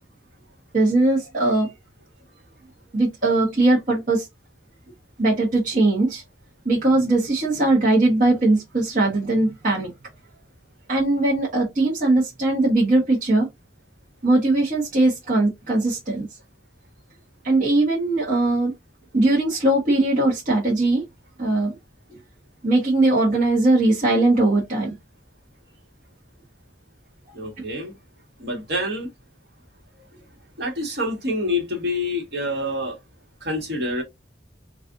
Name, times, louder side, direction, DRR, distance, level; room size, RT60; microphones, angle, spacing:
voice 1, 0.7-1.7 2.9-4.3 5.2-6.2 6.6-9.9 10.9-13.5 14.2-16.3 17.4-18.7 19.1-21.0 21.4-21.7 22.1-22.2 22.6-24.9, right 2 dB, 45° right, 1.1 m, -20 dB
voice 2, 27.3-27.9 28.4-29.1 30.6-32.9 33.4-34.0, left 1 dB, 65° right, 1.5 m, -27 dB
4.0 x 2.5 x 2.5 m
head